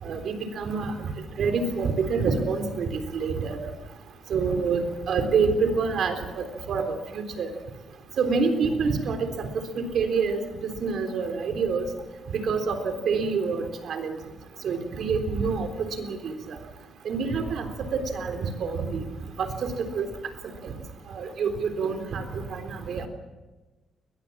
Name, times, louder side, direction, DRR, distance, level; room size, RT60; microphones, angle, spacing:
voice 1, 0.0-1.1 1.4-3.6 4.3-7.5 8.2-9.5 9.8-11.9 12.3-14.2 14.6-16.3 17.0-19.0 19.4-20.1 20.6-20.7 21.1-23.1, right 5 dB, 70° right, 6 dB, 3.7 m, -27 dB
22.0 x 21.0 x 7.4 m, 1.2 s
cardioid pair, 105°, 0 cm